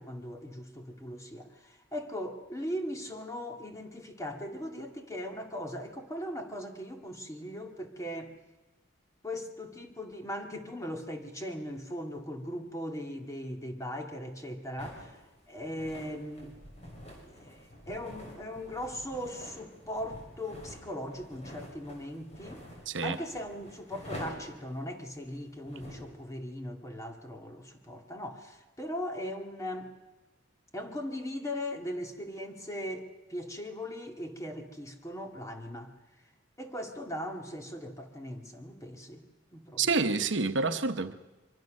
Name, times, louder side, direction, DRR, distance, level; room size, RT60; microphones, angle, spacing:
voice 1, 0.0-8.3 9.2-15.2 15.5-16.5 17.2-22.6 23.0-29.9 30.7-35.9 36.6-39.2 39.5-39.8, equal, 15° left, 2.2 m, -39 dB
sound 1, 14.8-26.2, equal, 35° left, 5.5 m, -47 dB
voice 2, 22.9-23.2 39.8-41.1, right 4 dB, 70° right, 1.0 m, -28 dB
24.5 x 23.5 x 6.5 m
head